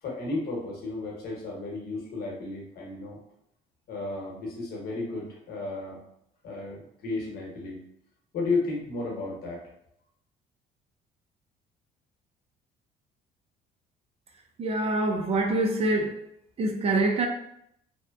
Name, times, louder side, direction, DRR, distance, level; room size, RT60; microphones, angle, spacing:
voice 1, 0.0-3.2 3.9-6.0 6.4-7.8 8.3-9.6, left 3 dB, 65° left, -3 dB, 1.0 m, -33 dB
voice 2, 14.6-16.2 16.6-17.3, right 2 dB, 35° right, 2 dB, 0.4 m, -25 dB
2.7 x 2.1 x 2.3 m, 0.75 s
cardioid pair, 110°, 17 cm